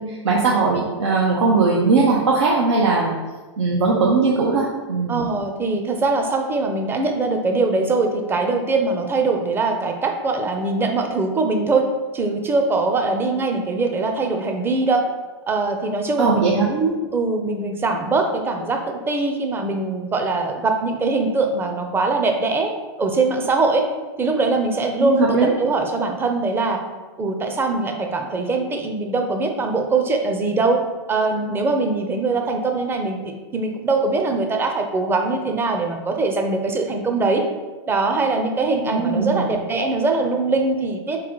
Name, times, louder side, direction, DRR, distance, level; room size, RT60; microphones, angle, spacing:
voice 1, 0.0-3.1 3.6-5.2 16.2-16.7 25.0-25.5 38.9-39.5, right 4 dB, 85° right, -4 dB, 0.7 m, -19 dB
voice 2, 5.1-11.9 12.1-15.0 15.5-22.7 23.0-23.9 24.2-26.8 27.2-30.8 31.1-37.4 37.9-41.2, right 3 dB, 15° right, 4 dB, 0.5 m, -22 dB
3.8 x 3.8 x 3.0 m, 1.3 s
hypercardioid pair, 120°, 15 cm